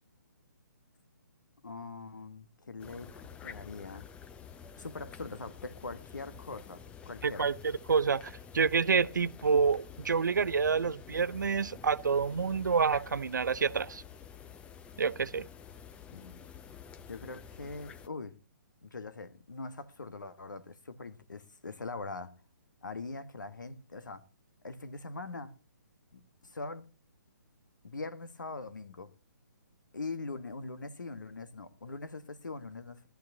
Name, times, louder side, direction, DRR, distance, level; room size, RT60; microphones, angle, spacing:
voice 1, 1.6-4.1 4.8-7.5 16.1-16.4 17.1-18.4 18.8-22.3 22.8-24.2 24.6-25.5 26.1-26.8 27.8-29.1 29.9-33.1, left 3 dB, 75° left, 1.4 m, -42 dB
sound 1, 2.8-18.1, left 7 dB, 10° left, 0.6 m, -49 dB
voice 2, 7.2-14.0 15.0-15.4, right 5 dB, 70° right, 0.6 m, -28 dB
19.0 x 13.0 x 2.7 m
figure-of-eight pair, 135°, 10 cm